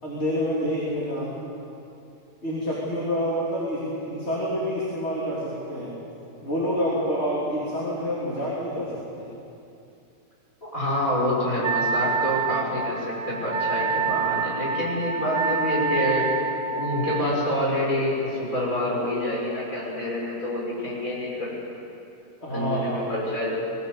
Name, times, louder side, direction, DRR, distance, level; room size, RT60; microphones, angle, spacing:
voice 1, 0.0-1.3 2.4-5.9 6.4-9.3 22.4-23.1, equal, 45° left, -6 dB, 3.6 m, -27 dB
voice 2, 10.6-16.3 16.7-21.5 22.5-23.5, left 1 dB, 60° left, -5 dB, 7.1 m, -27 dB
Wind instrument woodwind instrument, 11.6-17.3, right 5 dB, 55° right, 1.3 m, -27 dB
23.0 x 17.0 x 8.3 m, 2.7 s
omnidirectional pair, 1.6 m